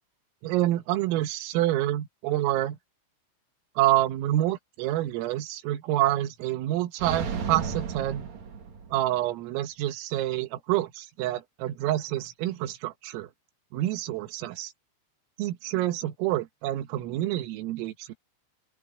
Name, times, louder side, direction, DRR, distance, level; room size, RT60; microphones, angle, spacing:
voice 1, 0.4-2.8 3.8-8.3 8.9-13.3 13.7-14.7 15.4-18.1, right 14 dB, 85° right, 4.1 m, -27 dB
sound 1, 7.0-9.2, right 6 dB, 45° right, 2.6 m, -33 dB
open air
omnidirectional pair, 5.9 m